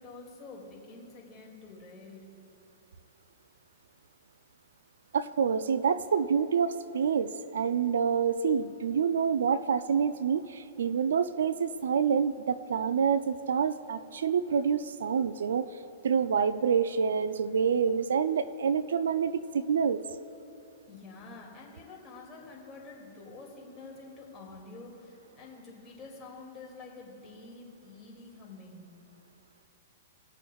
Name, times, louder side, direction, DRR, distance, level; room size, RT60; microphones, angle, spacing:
voice 1, 0.0-2.2 20.9-28.9, left 3 dB, 20° left, -3 dB, 2.4 m, -48 dB
voice 2, 5.1-15.7 16.0-20.0, right 6 dB, 80° right, 14 dB, 0.4 m, -27 dB
20.0 x 7.0 x 2.4 m, 2.8 s
hypercardioid pair, 130°, 0 cm